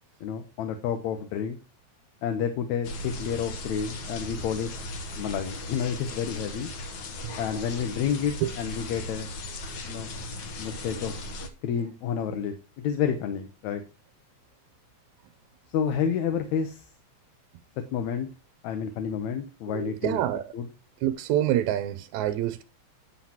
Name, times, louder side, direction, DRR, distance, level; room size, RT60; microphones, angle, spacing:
voice 1, 0.2-1.6 2.2-4.7 5.2-6.7 7.4-9.3 9.8-10.1 10.6-11.2 11.6-13.8 15.7-16.9 17.9-18.3 18.6-20.2 20.5-20.7, left 7 dB, 80° left, 2.2 m, -30 dB
sound 1, 2.8-11.5, left 2 dB, 55° left, 1.3 m, -37 dB
voice 2, 19.7-20.5 21.0-22.6, right 12 dB, 85° right, 1.9 m, -27 dB
10.0 x 7.4 x 2.9 m
omnidirectional pair, 3.3 m